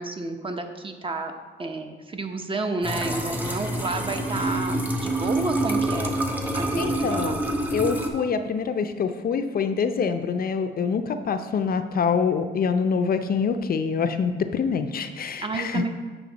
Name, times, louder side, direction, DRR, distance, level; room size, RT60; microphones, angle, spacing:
voice 1, 0.0-1.3 1.6-6.2 6.5-7.4 15.4-15.9, right 3 dB, 25° right, 5 dB, 0.9 m, -30 dB
sound 1, 2.8-8.1, right 1 dB, 10° right, 1.1 m, -27 dB
voice 2, 6.8-7.4 7.7-15.9, left 6 dB, 50° left, 8 dB, 0.5 m, -25 dB
8.5 x 5.7 x 4.0 m, 1.4 s
cardioid pair, 90°, 20 cm